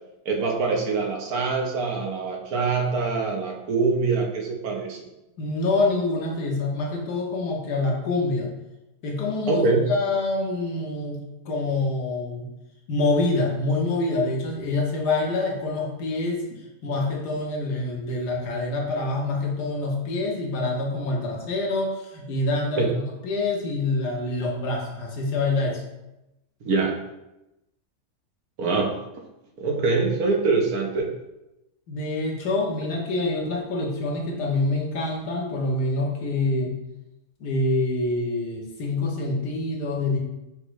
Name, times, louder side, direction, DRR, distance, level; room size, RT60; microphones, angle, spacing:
voice 1, 0.3-5.0 9.5-9.8 22.8-22.9 26.6-27.0 28.6-29.0 29.6-31.1, right 4 dB, 70° right, 0 dB, 1.2 m, -24 dB
voice 2, 5.4-8.5 9.0-12.5 12.9-16.4 16.8-25.8 31.9-36.8 37.4-40.2, left 2 dB, 90° left, -1 dB, 1.5 m, -26 dB
5.3 x 2.0 x 4.6 m, 0.94 s
omnidirectional pair, 1.7 m